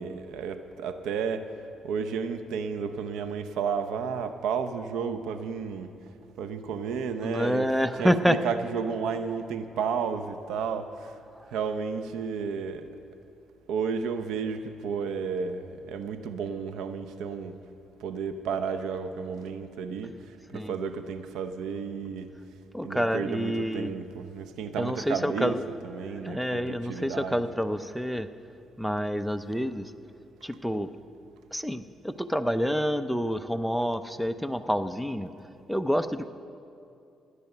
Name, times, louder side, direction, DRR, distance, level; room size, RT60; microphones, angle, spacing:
voice 1, 0.0-1.5 1.8-5.9 6.4-7.7 8.0-11.2 11.5-12.9 13.7-17.6 18.0-20.2 20.5-22.3 22.8-25.5 25.8-27.4, right 6 dB, 85° right, 9 dB, 0.8 m, -32 dB
voice 2, 7.2-8.4 11.4-11.5 20.5-20.8 22.7-24.0 24.8-25.7 26.1-28.3 28.8-29.9 30.4-30.9 31.5-35.3 35.7-36.3, equal, ahead, 11 dB, 0.6 m, -28 dB
15.0 x 10.0 x 6.8 m, 2.5 s
cardioid pair, 90°, 0 cm